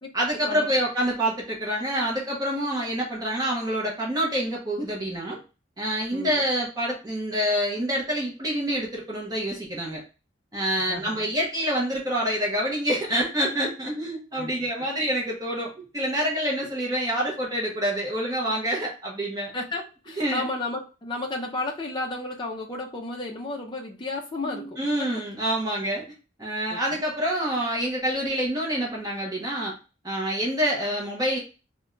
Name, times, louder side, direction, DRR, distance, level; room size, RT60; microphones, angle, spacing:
voice 1, 0.1-5.4 5.8-10.0 10.5-19.5 20.2-20.5 24.4-26.0 26.4-29.7 30.0-31.4, equal, 20° right, -3 dB, 0.8 m, -27 dB
voice 2, 10.8-11.2 14.4-14.5 19.5-24.8 26.7-26.8, left 2 dB, 25° left, 0 dB, 0.5 m, -32 dB
3.4 x 2.2 x 3.8 m, 0.33 s
head